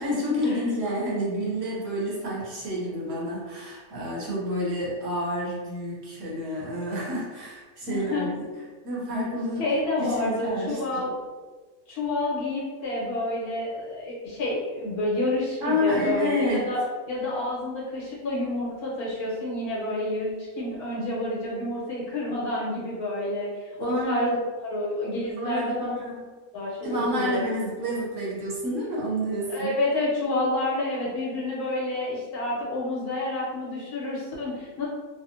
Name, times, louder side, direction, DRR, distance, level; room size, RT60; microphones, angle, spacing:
voice 1, 0.0-8.5 8.8-9.6 10.0-11.0 15.6-16.6 23.8-24.3 25.4-26.2 26.8-29.7, equal, 60° right, -5 dB, 1.0 m, -29 dB
voice 2, 7.9-8.3 9.6-11.1 11.9-16.8 17.1-24.4 24.6-25.9 26.5-27.5 29.5-34.9, left 1 dB, 80° left, -5 dB, 1.4 m, -29 dB
3.4 x 2.0 x 2.6 m, 1.4 s
omnidirectional pair, 1.6 m